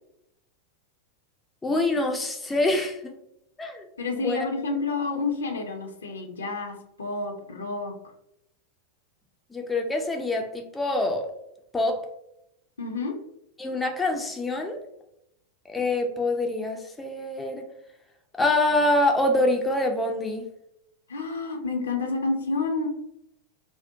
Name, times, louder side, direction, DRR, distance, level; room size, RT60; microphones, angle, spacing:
voice 1, 1.6-3.1 3.6-3.9 4.1-4.5 9.5-11.3 11.7-12.0 13.6-14.8 15.7-17.6 18.4-20.5, left 2 dB, 10° left, 3 dB, 0.3 m, -25 dB
voice 2, 4.0-7.9 12.8-13.1 21.1-22.9, left 3 dB, 70° left, 3 dB, 0.5 m, -29 dB
2.5 x 2.1 x 2.6 m, 0.79 s
figure-of-eight pair, 90°, 0 cm